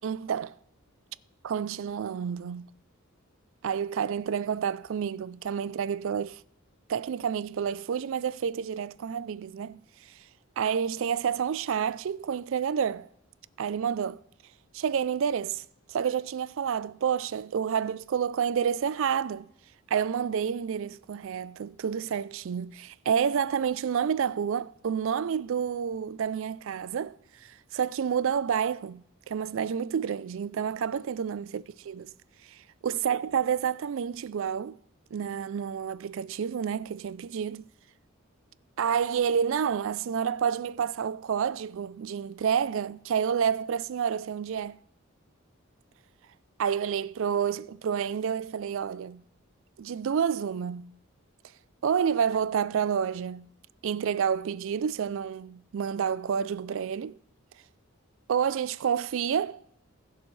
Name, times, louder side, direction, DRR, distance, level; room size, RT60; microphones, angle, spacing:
voice 1, 0.0-0.5 1.4-2.7 3.6-6.4 6.9-9.8 10.6-13.1 13.6-14.2 14.7-19.5 19.9-32.1 32.5-34.8 35.1-37.7 38.8-44.8 46.6-49.2 49.8-50.9 51.8-53.5 53.8-57.2 58.3-59.6, right 7 dB, 65° right, 0.4 m, -29 dB
19.5 x 7.1 x 3.2 m
head